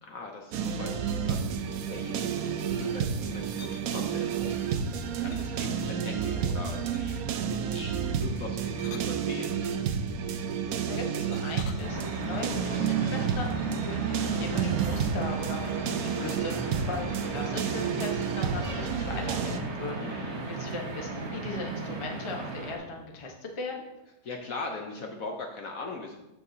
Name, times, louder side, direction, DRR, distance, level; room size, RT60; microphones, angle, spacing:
voice 1, 0.0-7.2 7.5-9.6 20.0-20.5 24.2-26.2, left 3 dB, 60° left, 2 dB, 1.0 m, -41 dB
sound 1, 0.5-19.6, right 7 dB, 70° right, 0.8 m, -30 dB
sound 2, 3.1-3.8 5.3-6.2 6.9-7.3 8.5-9.8 11.3-12.6, left 6 dB, 85° left, 1.4 m, -48 dB
voice 2, 10.9-23.8, left 2 dB, 25° left, 1 dB, 0.6 m, -38 dB
sound 3, 11.8-22.8, right 3 dB, 45° right, 1.1 m, -36 dB
14.0 x 4.7 x 2.7 m, 0.97 s
omnidirectional pair, 2.0 m